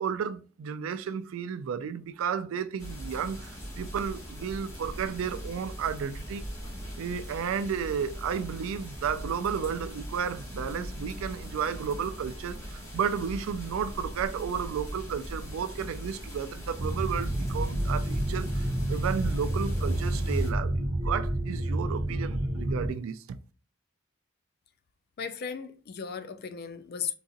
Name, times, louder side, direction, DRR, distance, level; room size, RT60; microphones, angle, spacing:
voice 1, 0.0-6.4 7.0-23.4, right 7 dB, 70° right, 0.3 m, -33 dB
sound 1, 2.8-20.5, equal, 85° left, 1.7 m, -40 dB
sound 2, 16.8-22.9, right 1 dB, 30° right, 0.6 m, -29 dB
voice 2, 25.2-27.1, left 7 dB, 45° left, 0.3 m, -36 dB
3.9 x 2.4 x 2.5 m
head